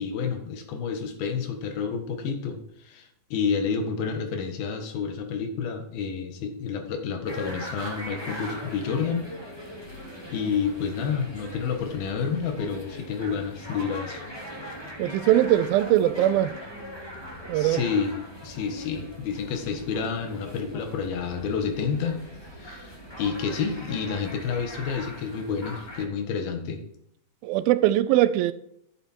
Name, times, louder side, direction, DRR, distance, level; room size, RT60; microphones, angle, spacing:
voice 1, 0.0-9.3 10.3-14.3 17.5-18.1 18.4-22.2 22.6-26.8, left 6 dB, 85° left, 3.5 m, -29 dB
sound 1, 7.3-26.1, equal, 10° left, 1.6 m, -40 dB
voice 2, 15.0-16.5 17.5-17.8 27.4-28.5, right 13 dB, 85° right, 2.5 m, -21 dB
12.0 x 9.3 x 4.5 m
omnidirectional pair, 4.2 m